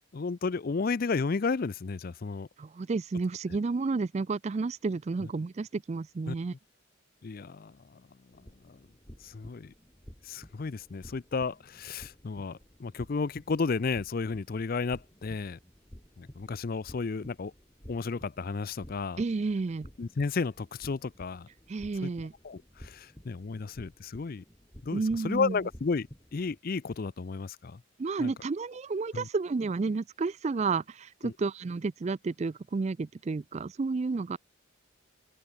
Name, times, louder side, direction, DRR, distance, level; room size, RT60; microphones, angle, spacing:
voice 1, 0.1-2.5 6.3-6.4 7.2-8.0 8.6-8.8 9.2-9.7 10.2-15.6 16.2-17.5 17.9-19.2 20.0-21.5 22.0-22.1 22.4-24.4 24.8-27.8 28.2-28.3 29.1-29.3 31.2-31.3, left 4 dB, 45° left, 0.4 m, -33 dB
voice 2, 2.6-6.5 19.2-19.9 21.7-22.3 24.9-25.6 28.0-34.4, right 4 dB, 30° right, 0.3 m, -31 dB
sound 1, 8.3-26.6, equal, 15° left, 3.2 m, -53 dB
open air
head